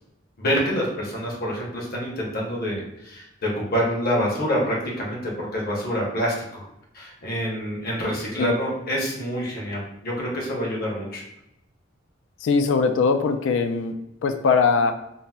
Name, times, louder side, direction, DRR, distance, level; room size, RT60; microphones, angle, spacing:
voice 1, 0.4-6.7 6.9-11.2, equal, 50° left, -3 dB, 0.8 m, -27 dB
voice 2, 12.4-14.9, left 4 dB, 70° left, 7 dB, 0.3 m, -21 dB
3.9 x 2.0 x 2.2 m, 0.83 s
head